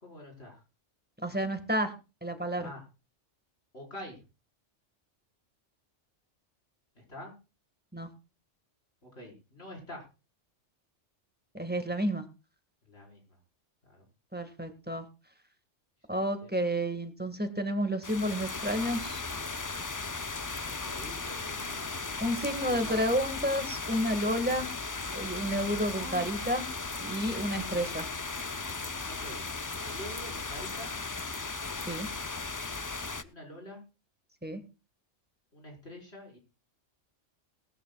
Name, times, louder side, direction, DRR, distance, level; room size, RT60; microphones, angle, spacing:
voice 1, 0.0-0.6 2.5-2.8 3.7-4.2 6.9-7.3 9.0-10.1 12.9-13.4 13.8-14.1 16.4-16.5 20.6-21.9 22.5-23.3 24.4-24.7 25.9-26.3 27.5-27.9 29.1-29.5 29.8-30.9 33.2-33.8 35.5-36.4, left 1 dB, 60° left, 0 dB, 5.3 m, -46 dB
voice 2, 1.2-1.9 2.2-2.7 7.9-8.1 11.5-12.2 14.3-15.0 16.1-19.2 22.2-24.7 25.1-26.6 27.0-28.1 31.9-32.1 34.4-34.6, equal, 10° right, 7 dB, 1.6 m, -30 dB
sound 1, 18.0-33.2, left 3 dB, 25° left, 0.4 m, -37 dB
19.5 x 13.0 x 2.3 m, 0.30 s
omnidirectional pair, 1.3 m